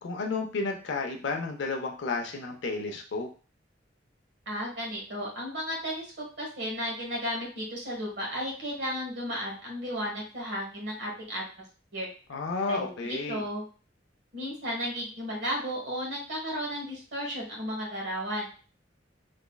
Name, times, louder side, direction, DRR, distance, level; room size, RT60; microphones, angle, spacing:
voice 1, 0.0-3.3 12.3-13.4, left 3 dB, 75° left, 2 dB, 0.5 m, -32 dB
voice 2, 4.5-6.1 6.4-11.4 11.9-12.1 12.7-13.6 14.3-18.5, equal, 65° right, -2 dB, 1.4 m, -34 dB
3.5 x 3.0 x 2.3 m, 0.38 s
head